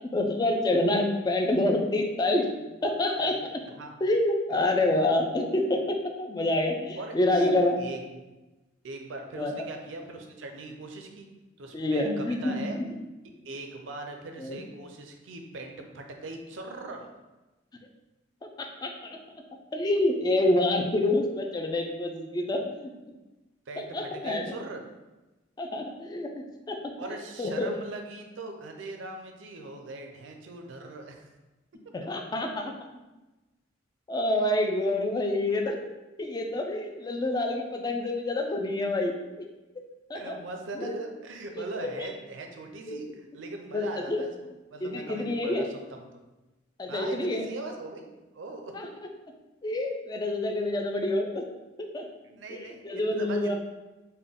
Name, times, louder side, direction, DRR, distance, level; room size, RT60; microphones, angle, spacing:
voice 1, 0.0-2.5 2.8-3.3 4.0-7.8 9.4-9.6 11.7-12.8 14.4-14.6 18.6-19.2 19.7-22.9 23.8-24.5 25.6-26.3 26.7-27.7 31.9-32.7 34.1-35.8 36.2-39.5 40.1-40.4 40.8-41.0 41.6-42.1 42.9-43.0 43.7-44.2 44.8-45.7 46.8-47.5 48.7-48.9 49.6-51.4 51.8-52.1 52.5-53.6, left 1 dB, 20° left, 3 dB, 0.3 m, -27 dB
voice 2, 7.0-8.2 8.8-11.3 11.6-12.8 13.4-17.1 23.7-24.8 27.0-31.3 31.7-31.8 40.1-44.3 44.7-46.2 46.9-48.7 52.2-53.6, right 2 dB, 70° right, 4 dB, 0.5 m, -40 dB
3.6 x 2.2 x 3.5 m, 1.1 s
head